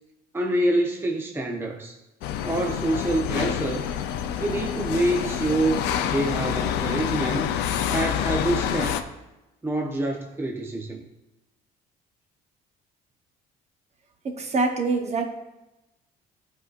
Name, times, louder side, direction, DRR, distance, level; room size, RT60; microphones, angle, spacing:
voice 1, 0.3-2.0 2.4-3.8 4.4-7.5 7.9-9.0 9.6-11.0, right 1 dB, 15° right, 2 dB, 0.6 m, -26 dB
sound 1, 2.2-9.0, left 9 dB, 90° left, 0.5 m, -27 dB
voice 2, 14.2-15.3, right 3 dB, 40° right, 4 dB, 0.9 m, -25 dB
12.5 x 4.7 x 2.5 m, 1.0 s
cardioid pair, 110°, 17 cm